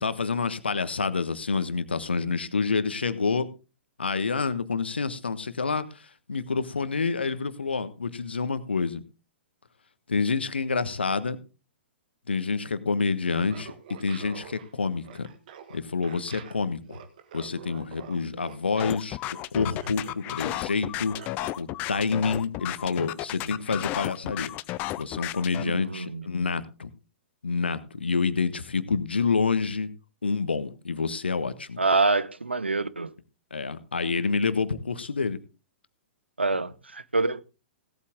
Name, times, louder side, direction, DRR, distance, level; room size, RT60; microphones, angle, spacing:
voice 1, 0.0-3.5 4.0-5.8 6.3-9.0 10.1-11.4 12.3-13.7 14.0-15.3 15.7-17.0 17.3-19.2 19.5-21.1 21.6-24.5 25.0-26.9 27.4-29.9 30.2-31.8 33.5-35.4, left 4 dB, 70° left, 1.2 m, -28 dB
Laughter, 13.2-21.6, right 8 dB, 50° right, 1.7 m, -47 dB
sound 1, 18.8-25.6, left 16 dB, 25° left, 0.5 m, -33 dB
voice 2, 25.6-26.2 31.8-33.1 36.4-37.4, right 3 dB, 80° right, 0.8 m, -26 dB
17.0 x 8.5 x 3.6 m
figure-of-eight pair, 110°, 6 cm